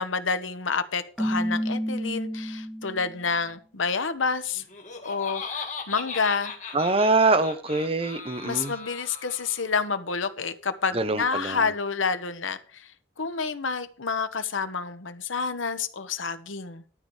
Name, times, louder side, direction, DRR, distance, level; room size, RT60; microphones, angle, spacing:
voice 1, 0.0-4.6 5.0-6.5 8.4-16.8, left 5 dB, 85° left, 1.1 m, -29 dB
Keyboard (musical), 1.2-3.2, equal, ahead, 0.4 m, -29 dB
Laughter, 4.5-9.8, left 5 dB, 40° left, 2.0 m, -38 dB
voice 2, 6.7-8.7 10.9-11.7, right 3 dB, 30° right, 1.0 m, -24 dB
12.5 x 4.7 x 7.2 m
head